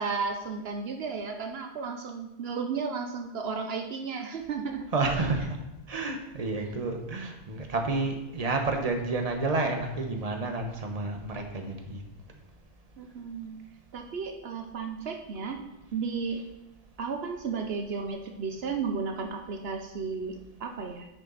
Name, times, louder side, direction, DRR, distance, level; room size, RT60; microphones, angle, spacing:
voice 1, 0.0-4.9 13.0-13.6 13.9-15.7 15.9-16.4 17.0-21.1, right 5 dB, 75° right, 4 dB, 1.0 m, -33 dB
voice 2, 4.9-5.6 5.9-12.0, right 3 dB, 40° right, 3 dB, 1.2 m, -30 dB
10.0 x 6.7 x 4.0 m, 0.95 s
omnidirectional pair, 1.1 m